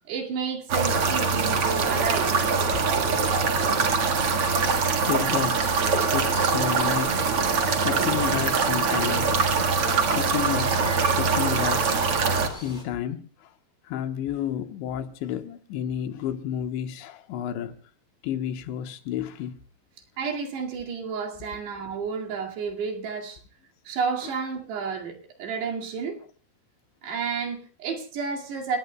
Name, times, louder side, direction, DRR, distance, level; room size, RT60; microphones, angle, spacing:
voice 1, 0.1-2.4 20.2-23.4 23.9-26.2 27.0-28.8, right 5 dB, 75° right, 4.4 m, -31 dB
sound 1, 0.7-12.5, right 4 dB, 55° right, 1.6 m, -23 dB
voice 2, 3.5-4.1 5.1-7.3 7.8-9.3 10.1-12.0 12.5-13.5 13.8-17.7 18.2-19.6, left 10 dB, 90° left, 3.4 m, -31 dB
sound 2, 7.3-12.8, left 2 dB, 15° left, 1.6 m, -42 dB
29.5 x 19.0 x 2.3 m
omnidirectional pair, 5.0 m